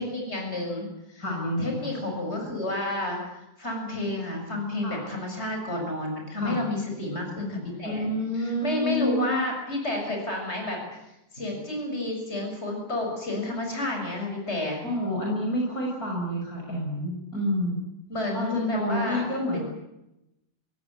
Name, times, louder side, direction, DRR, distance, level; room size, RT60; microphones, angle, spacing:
voice 1, 0.0-1.2 1.6-8.1 8.3-11.0 11.3-14.8 18.1-19.6, left 1 dB, 35° left, 2 dB, 7.4 m, -31 dB
voice 2, 1.2-1.9 4.8-5.0 6.4-6.6 7.8-9.4 14.8-17.8 18.3-19.6, equal, 50° left, -1 dB, 6.6 m, -28 dB
25.5 x 17.0 x 9.9 m, 0.90 s
omnidirectional pair, 2.0 m